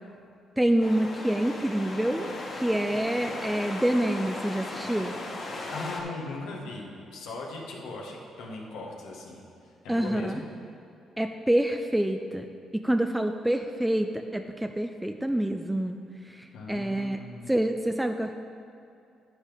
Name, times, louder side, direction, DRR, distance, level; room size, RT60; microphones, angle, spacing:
voice 1, 0.6-5.1 9.9-10.4 11.2-12.5 12.7-16.0 16.3-17.2 17.5-18.3, right 1 dB, 5° right, 5 dB, 0.4 m, -27 dB
sound 1, 0.8-6.0, left 2 dB, 45° left, 1.8 m, -37 dB
voice 2, 5.7-10.5 16.5-17.5, left 3 dB, 90° left, -1 dB, 1.6 m, -39 dB
9.9 x 9.8 x 3.5 m, 2.6 s
cardioid pair, 90°, 0 cm